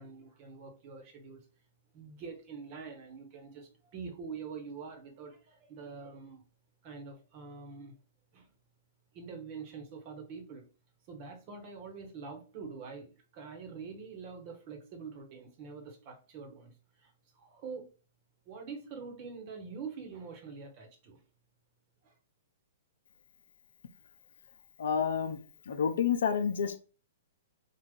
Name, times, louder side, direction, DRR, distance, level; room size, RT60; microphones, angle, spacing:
voice 1, 0.0-1.5 1.9-6.4 6.8-8.0 8.3-8.5 9.1-10.7 11.1-17.9 18.4-21.2 22.0-22.2, right 5 dB, 45° right, 4 dB, 1.2 m, -45 dB
voice 2, 24.8-25.4 25.7-26.8, left 7 dB, 70° left, 7 dB, 0.6 m, -29 dB
3.8 x 2.4 x 3.7 m, 0.35 s
hypercardioid pair, 120°, 0 cm